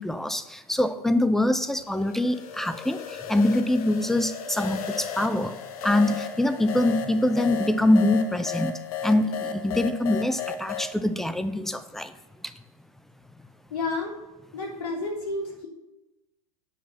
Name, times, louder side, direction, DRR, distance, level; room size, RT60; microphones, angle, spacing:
voice 1, 0.0-3.0 3.3-5.6 5.8-8.7 9.0-12.1, left 1 dB, ahead, 11 dB, 0.4 m, -24 dB
sound 1, 1.9-10.9, left 6 dB, 70° left, 1.0 m, -35 dB
voice 2, 13.7-14.2 14.5-15.7, left 3 dB, 85° left, -4 dB, 3.3 m, -31 dB
8.2 x 6.2 x 5.7 m, 1.1 s
supercardioid pair, 130°, 19 cm